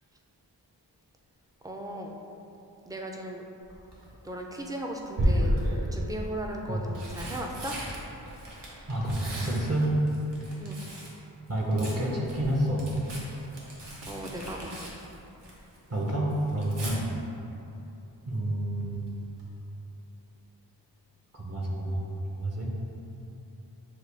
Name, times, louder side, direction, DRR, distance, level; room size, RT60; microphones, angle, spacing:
voice 1, 1.6-2.1 2.9-3.4 4.2-5.5 5.9-7.7 10.6-10.8 14.1-14.8, right 1 dB, 10° right, 0 dB, 0.4 m, -37 dB
Tearing, 3.6-4.1 5.1-5.9 6.7-11.2 11.5-15.8 16.1-16.9 18.8-19.1 19.4-19.5, equal, 70° right, 1.0 m, -33 dB
voice 2, 8.9-10.0 11.5-12.8 15.9-17.0 18.3-19.2 21.3-22.7, right 1 dB, 35° right, -3 dB, 0.7 m, -29 dB
6.5 x 2.2 x 3.3 m, 2.8 s
wide cardioid pair, 70°, 43 cm